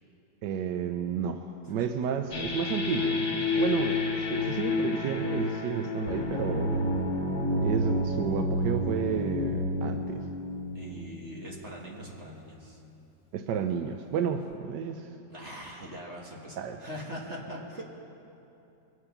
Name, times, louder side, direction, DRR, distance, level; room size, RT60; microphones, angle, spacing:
voice 1, 0.4-6.9 7.6-10.3 13.3-15.1 16.6-16.8, right 8 dB, 80° right, 6 dB, 1.2 m, -32 dB
sound 1, 2.3-11.7, left 2 dB, 65° left, 1.9 m, -30 dB
voice 2, 3.7-4.0 10.7-12.8 15.3-17.8, equal, 40° right, -2 dB, 1.7 m, -42 dB
22.5 x 7.9 x 5.7 m, 2.8 s
omnidirectional pair, 1.9 m